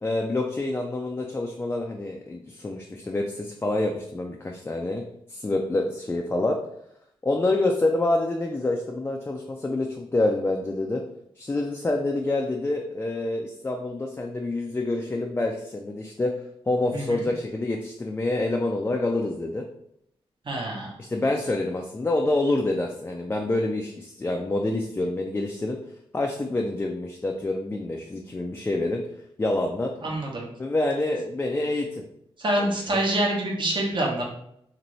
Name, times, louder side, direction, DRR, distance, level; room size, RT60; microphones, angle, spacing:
voice 1, 0.0-5.0 5.3-6.6 7.2-11.0 11.4-16.3 16.6-19.6 21.0-25.8 26.1-29.0 29.4-29.9 30.6-32.0 32.6-32.7, left 2 dB, 20° left, 1 dB, 0.3 m, -27 dB
voice 2, 20.5-20.9 30.0-30.5 32.4-34.2, right 1 dB, 50° right, -1 dB, 0.8 m, -26 dB
2.6 x 2.5 x 3.0 m, 0.74 s
cardioid pair, 70°, 11 cm